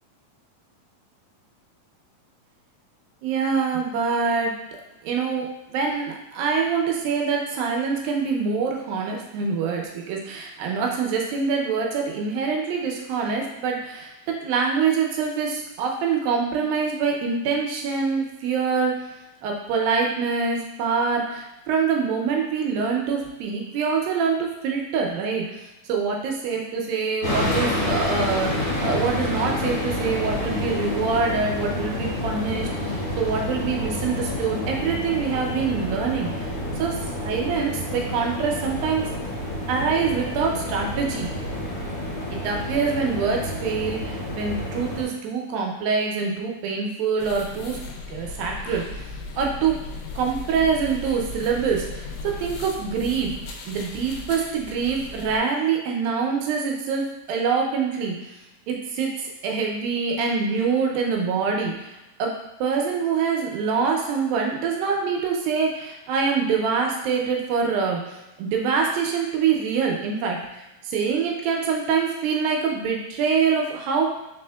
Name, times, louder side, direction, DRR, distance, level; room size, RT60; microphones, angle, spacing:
voice 1, 3.2-4.6 5.0-19.1 19.4-39.1 39.7-41.3 42.3-47.8 48.1-49.1 49.4-49.8 50.2-53.3 53.7-58.2 58.7-74.1, right 5 dB, 80° right, 0 dB, 2.3 m, -25 dB
sound 1, 27.2-45.0, left 1 dB, 50° left, 1.8 m, -29 dB
sound 2, 47.2-55.4, left 3 dB, 80° left, 2.2 m, -36 dB
5.0 x 4.2 x 2.2 m, 0.96 s
omnidirectional pair, 4.2 m